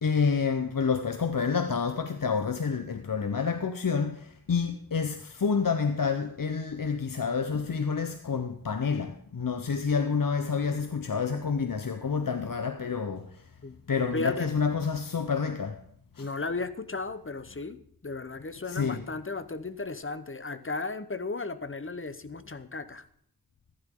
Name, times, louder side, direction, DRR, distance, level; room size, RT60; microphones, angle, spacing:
voice 1, 0.0-13.4 13.9-15.8 16.2-16.3 18.7-19.0, left 5 dB, 60° left, 0.9 m, -28 dB
voice 2, 13.6-14.5 16.2-17.8 18.0-23.0, left 3 dB, 35° left, 0.9 m, -35 dB
14.5 x 11.5 x 3.8 m
wide cardioid pair, 55°, 37 cm